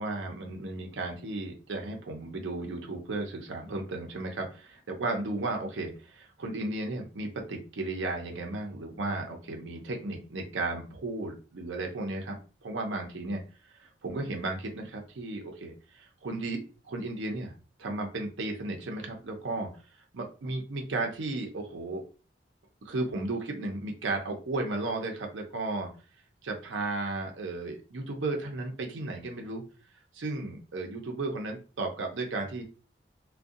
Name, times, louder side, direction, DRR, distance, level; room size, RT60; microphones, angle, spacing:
voice 1, 0.0-13.4 13.7-17.5 17.8-19.7 20.1-22.0 22.8-25.9 26.4-29.6 30.1-32.6, right 2 dB, 85° right, 2 dB, 0.6 m, -34 dB
2.4 x 2.2 x 2.6 m, 0.35 s
head